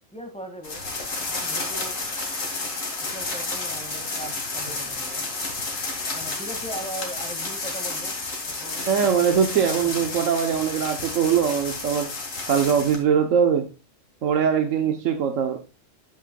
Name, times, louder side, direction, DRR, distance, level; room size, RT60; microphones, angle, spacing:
voice 1, 0.1-0.8 1.2-2.0 3.1-5.3 6.1-8.2 8.5-9.3 9.6-10.0, right 1 dB, 5° left, 4 dB, 1.8 m, -39 dB
sound 1, 0.6-13.0, left 3 dB, 85° left, 2.5 m, -31 dB
voice 2, 8.9-12.1 12.5-13.7 14.2-15.6, right 7 dB, 85° right, 5 dB, 1.3 m, -21 dB
9.0 x 8.5 x 2.2 m, 0.31 s
omnidirectional pair, 1.3 m